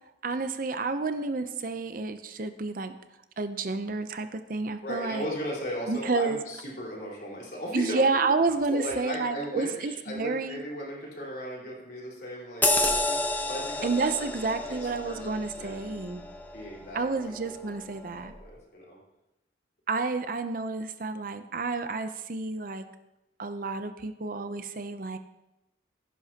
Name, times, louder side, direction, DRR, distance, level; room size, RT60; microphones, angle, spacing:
voice 1, 0.2-2.9 3.4-5.3 5.9-6.4 7.7-10.6 13.8-16.2 16.9-18.3 19.9-22.8 23.4-25.2, right 3 dB, 45° right, 9 dB, 0.6 m, -30 dB
voice 2, 4.8-8.4 8.7-13.2 13.5-14.3 14.8-15.2 15.5-15.9 16.5-17.8 18.2-19.0, equal, 50° left, -4 dB, 3.9 m, -37 dB
sound 1, 12.6-17.6 18.0-18.2, left 2 dB, 10° left, 0.8 m, -30 dB
16.0 x 11.0 x 2.8 m, 0.94 s
head